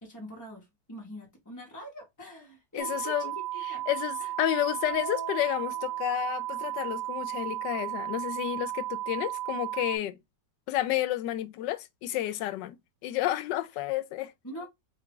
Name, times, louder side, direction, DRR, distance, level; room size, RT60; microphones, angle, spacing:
voice 1, 0.0-3.3 3.5-3.8 4.2-4.3 14.4-14.7, equal, 15° left, 0.6 m, -44 dB
voice 2, 2.7-3.3 3.9-10.2 10.7-12.8 13.0-14.3, left 14 dB, 80° left, 1.2 m, -31 dB
sound 1, 2.8-10.0, right 15 dB, 55° right, 1.2 m, -34 dB
sound 2, 4.9-6.7, right 3 dB, 80° right, 2.0 m, -44 dB
4.2 x 2.4 x 3.6 m
omnidirectional pair, 1.9 m